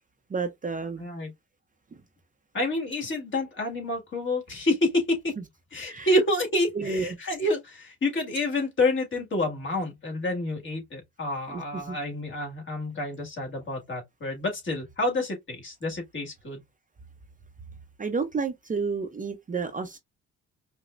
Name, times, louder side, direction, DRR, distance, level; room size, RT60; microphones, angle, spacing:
voice 1, 0.3-1.1 5.9-6.2 6.7-7.2 11.5-12.0 18.0-20.0, right 4 dB, 25° right, 0.6 m, -31 dB
voice 2, 1.0-1.3 2.5-5.3 5.7-16.6, left 1 dB, 40° left, 1.8 m, -28 dB
5.0 x 2.1 x 2.5 m
cardioid pair, 90°, 30 cm